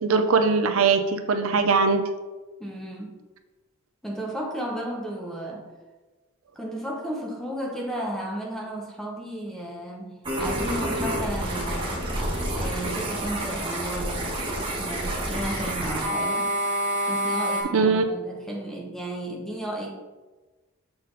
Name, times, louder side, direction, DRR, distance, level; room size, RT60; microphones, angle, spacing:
voice 1, 0.0-2.0 17.7-18.0, right 4 dB, 70° right, 7 dB, 0.5 m, -21 dB
voice 2, 2.6-3.2 4.0-5.7 6.6-12.0 12.5-14.3 14.8-16.6 17.1-19.9, right 1 dB, ahead, -1 dB, 0.9 m, -33 dB
sound 1, 10.2-17.6, right 1 dB, 25° right, 1.4 m, -28 dB
6.9 x 4.1 x 3.9 m, 1.2 s
head